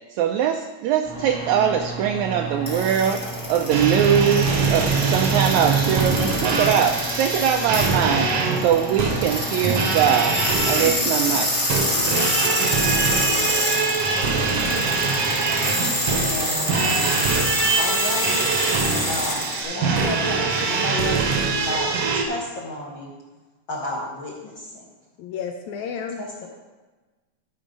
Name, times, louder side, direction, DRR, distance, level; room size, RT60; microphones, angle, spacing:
voice 1, 0.1-3.2 3.5-8.3 8.6-10.4 10.7-11.5, right 8 dB, 80° right, 4 dB, 1.8 m, -22 dB
sound 1, 1.0-19.6, left 1 dB, 15° left, 1.2 m, -27 dB
sound 2, 3.7-22.2, right 4 dB, 60° right, 1.7 m, -23 dB
voice 2, 13.7-14.1 25.2-26.5, left 7 dB, 75° left, 4 dB, 1.9 m, -33 dB
voice 3, 16.1-17.1 17.7-18.4 19.0-23.1 23.7-24.9 26.2-26.5, left 1 dB, 55° left, -3 dB, 1.4 m, -32 dB
13.0 x 4.7 x 5.2 m, 1.2 s
omnidirectional pair, 3.5 m